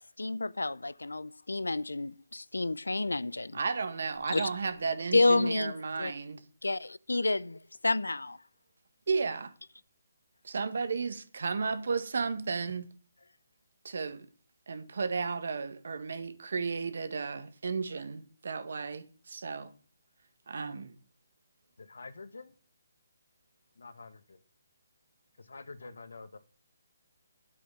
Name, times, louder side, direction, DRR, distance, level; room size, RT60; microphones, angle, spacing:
voice 1, 0.2-3.6 4.3-4.4 5.1-5.7 6.0-6.1 6.6-8.4, left 2 dB, 90° left, 0.5 m, -29 dB
voice 2, 3.5-6.4 9.1-9.5 10.4-12.9 13.8-14.2 14.7-19.7 20.5-20.9, right 4 dB, 65° right, 1.7 m, -33 dB
Cricket, 4.1-4.9, left 6 dB, 30° left, 2.7 m, -44 dB
voice 3, 21.8-22.6 23.7-24.4 25.4-26.4, left 3 dB, 75° left, 1.5 m, -47 dB
8.7 x 8.6 x 6.8 m
figure-of-eight pair, 150°, 0 cm